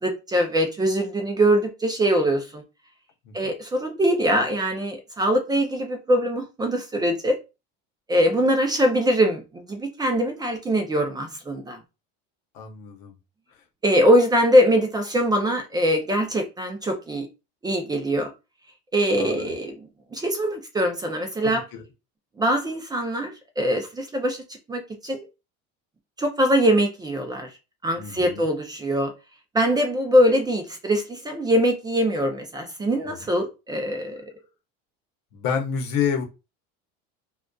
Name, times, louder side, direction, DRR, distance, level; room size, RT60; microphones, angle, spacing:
voice 1, 0.0-2.6 3.3-7.4 8.1-11.8 13.8-17.3 17.6-18.3 18.9-19.7 20.1-21.6 22.4-24.4 24.7-25.3 26.2-27.5 27.8-29.1 29.5-34.2, equal, 15° right, 0.4 m, -22 dB
voice 2, 12.5-13.1 19.2-19.5 21.4-21.8 28.0-28.4 33.0-33.2 35.3-36.2, left 7 dB, 75° left, 0.8 m, -29 dB
2.5 x 2.2 x 2.2 m
cardioid pair, 130°, 30 cm